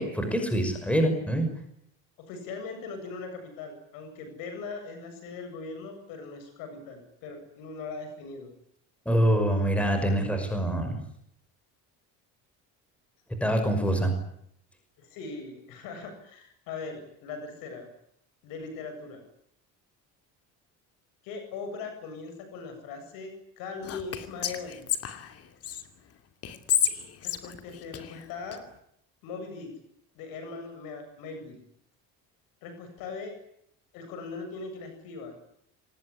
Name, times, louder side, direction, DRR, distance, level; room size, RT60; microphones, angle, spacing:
voice 1, 0.0-1.5 9.1-11.0 13.4-14.1, right 1 dB, 5° left, 5 dB, 5.7 m, -25 dB
voice 2, 2.2-8.5 15.0-17.9 18.4-19.2 21.2-24.9 27.2-28.6 29.2-29.7 30.1-31.6 32.6-33.3 33.9-35.4, left 4 dB, 75° left, 7 dB, 7.9 m, -40 dB
Whispering, 23.8-25.8 26.4-28.6, left 9 dB, 45° left, 2.7 m, -30 dB
26.5 x 20.0 x 10.0 m, 0.72 s
cardioid pair, 150°, 35 cm